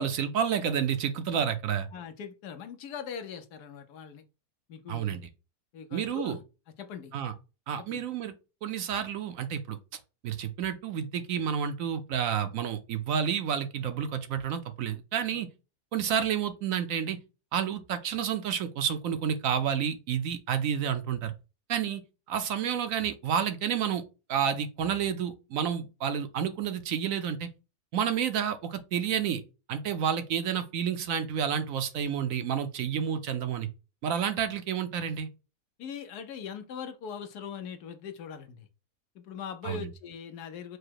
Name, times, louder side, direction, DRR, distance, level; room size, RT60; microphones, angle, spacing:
voice 1, 0.0-1.9 4.9-5.2 5.9-6.4 7.1-7.3 7.7-8.3 8.6-9.8 10.2-15.5 15.9-17.2 17.5-21.3 21.7-22.0 22.3-24.0 24.3-27.5 27.9-29.4 29.7-33.7 34.0-35.3 39.6-39.9, right 8 dB, 70° right, 0.9 m, -30 dB
voice 2, 1.9-4.2 4.7-5.2 5.7-6.4 6.8-7.1 7.8-8.0 15.3-15.4 35.8-38.7 39.1-40.8, left 7 dB, 90° left, 1.3 m, -41 dB
4.8 x 2.1 x 4.5 m
omnidirectional pair, 1.6 m